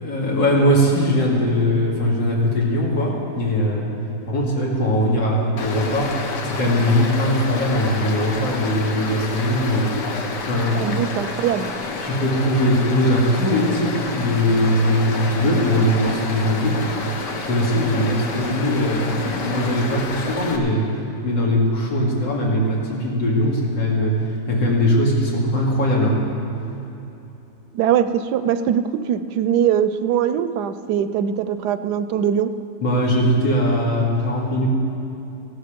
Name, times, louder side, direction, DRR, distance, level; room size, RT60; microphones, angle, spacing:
voice 1, 0.0-3.8 4.3-6.1 6.4-10.9 12.0-17.1 17.5-20.9 21.2-26.2 32.8-34.7, equal, 90° left, -4 dB, 3.2 m, -20 dB
Stream, 5.6-20.6, left 4 dB, 75° left, 1.7 m, -29 dB
voice 2, 10.8-11.7 27.7-32.5, right 9 dB, 75° right, 11 dB, 1.1 m, -21 dB
15.5 x 12.5 x 5.2 m, 2.9 s
omnidirectional pair, 1.9 m